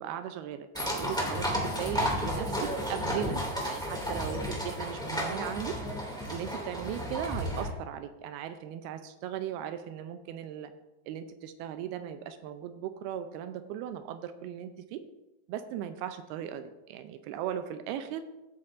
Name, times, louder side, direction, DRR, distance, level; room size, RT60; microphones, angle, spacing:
voice 1, 0.0-10.7 11.1-15.0 15.5-18.3, right 9 dB, 85° right, 9 dB, 2.3 m, -38 dB
sound 1, 0.7-7.7, equal, 5° left, 0.4 m, -32 dB
16.0 x 8.6 x 2.5 m, 1.0 s
omnidirectional pair, 4.9 m